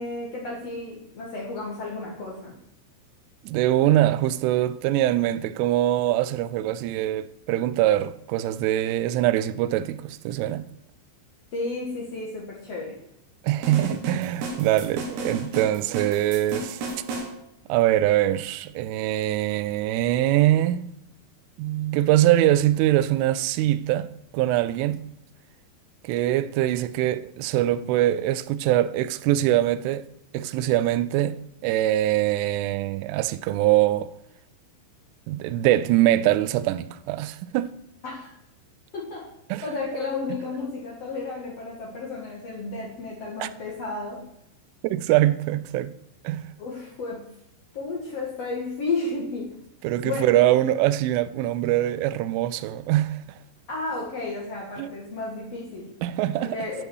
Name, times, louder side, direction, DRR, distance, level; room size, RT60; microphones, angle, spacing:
voice 1, 0.0-2.5 11.5-13.0 38.0-38.3 38.9-39.3 39.6-44.2 46.6-47.2 47.7-49.5 50.0-50.4 53.7-55.9 56.4-56.8, left 3 dB, 75° left, 1.4 m, -32 dB
voice 2, 3.4-10.7 13.4-16.8 17.7-20.9 21.6-24.1 24.3-25.0 26.0-30.1 30.3-34.1 35.3-37.7 39.5-39.6 43.4-43.5 44.8-46.0 46.2-46.5 49.8-53.2 54.8-54.9 56.0-56.6, right 14 dB, 85° right, 3.0 m, -23 dB
sound 1, 13.6-17.3, right 2 dB, 65° right, 3.6 m, -34 dB
11.5 x 5.5 x 7.7 m
omnidirectional pair, 5.8 m